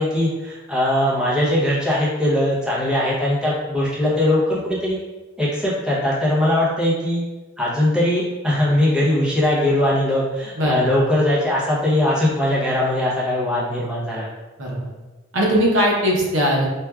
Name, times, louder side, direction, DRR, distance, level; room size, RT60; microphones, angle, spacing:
voice 1, 0.0-5.0 5.4-7.2 7.6-14.3, left 1 dB, 5° right, -7 dB, 0.7 m, -20 dB
voice 2, 10.6-10.9 14.6-14.9 15.3-16.7, equal, 75° right, -3 dB, 0.8 m, -19 dB
4.4 x 2.3 x 2.3 m, 1.2 s
head